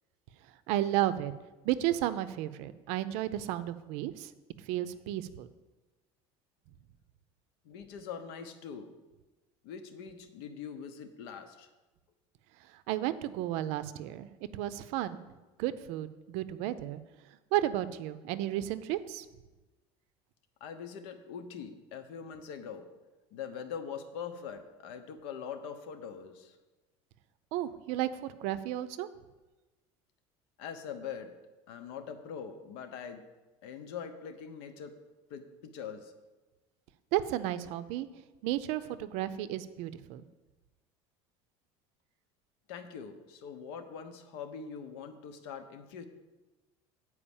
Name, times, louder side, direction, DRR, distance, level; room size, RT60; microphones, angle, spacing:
voice 1, 0.7-1.3 1.6-4.3 4.7-5.5 12.9-14.3 14.5-15.2 15.6-17.0 17.5-19.2 27.5-29.1 37.1-38.1 38.4-40.2, right 13 dB, 60° right, 13 dB, 0.5 m, -33 dB
voice 2, 7.6-8.9 9.6-11.7 20.6-22.9 23.3-26.5 30.6-31.3 31.7-33.2 33.6-34.9 35.3-36.1 42.7-46.1, left 7 dB, 80° left, 8 dB, 1.0 m, -43 dB
8.7 x 4.8 x 7.1 m, 1.2 s
cardioid pair, 170°, 13 cm